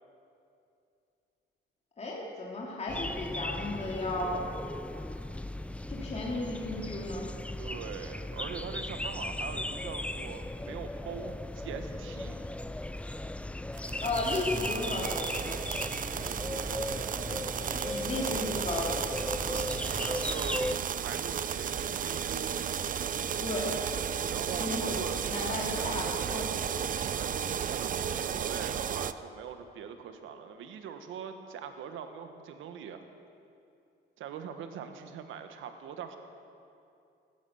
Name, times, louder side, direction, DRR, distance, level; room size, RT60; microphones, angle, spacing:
voice 1, 2.0-4.5 5.9-7.3 14.0-15.6 17.8-19.0 23.4-23.7 24.6-25.0 25.3-26.5, left 2 dB, 35° left, -4 dB, 3.1 m, -34 dB
sound 1, 2.9-20.7, left 1 dB, 5° left, 0.5 m, -37 dB
voice 2, 7.6-12.4 16.1-17.5 19.4-22.5 24.3-25.2 27.1-27.3 27.7-33.0 34.2-36.2, right 7 dB, 80° right, 7 dB, 1.3 m, -42 dB
sound 2, 13.8-29.1, right 8 dB, 45° right, 0.6 m, -34 dB
17.0 x 12.0 x 7.0 m, 2.6 s
cardioid pair, 90°, 20 cm